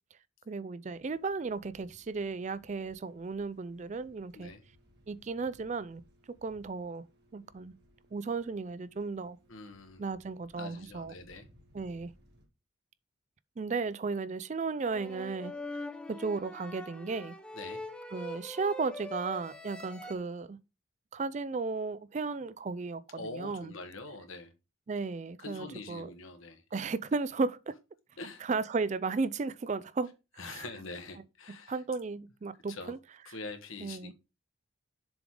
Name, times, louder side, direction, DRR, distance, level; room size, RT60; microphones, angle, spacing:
voice 1, 0.5-4.5 5.1-6.0 6.4-7.0 7.3-7.7 8.1-9.4 10.0-11.1 11.7-12.1 13.6-15.5 16.1-17.4 18.1-20.6 21.1-23.7 24.9-26.1 26.7-27.7 28.4-30.6 31.5-33.0 33.8-34.1, right 4 dB, 35° right, 0.3 m, -35 dB
sound 1, 0.8-12.5, equal, 50° right, 1.9 m, -63 dB
voice 2, 9.5-10.0 10.6-11.4 17.5-17.8 23.1-24.5 25.4-26.6 28.2-28.4 30.4-31.8 32.7-32.9 33.2-34.1, left 3 dB, 85° left, 1.4 m, -44 dB
sound 2, 14.8-20.1, left 2 dB, 5° left, 0.7 m, -43 dB
7.0 x 3.8 x 4.8 m
head